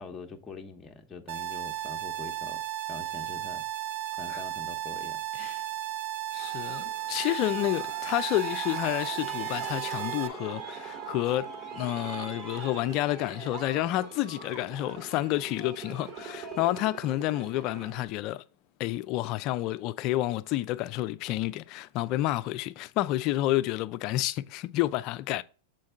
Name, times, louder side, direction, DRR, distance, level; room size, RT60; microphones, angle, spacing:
voice 1, 0.0-2.6 2.9-3.6 4.1-5.2, left 4 dB, 20° left, 1.0 m, -44 dB
sound 1, 1.3-10.3, right 12 dB, 65° right, 0.6 m, -35 dB
voice 2, 6.3-18.4 18.8-25.4, left 16 dB, 45° left, 0.4 m, -30 dB
Aircraft, 6.4-18.0, right 5 dB, 30° right, 1.7 m, -42 dB
6.4 x 4.5 x 3.5 m
hypercardioid pair, 115°, 0 cm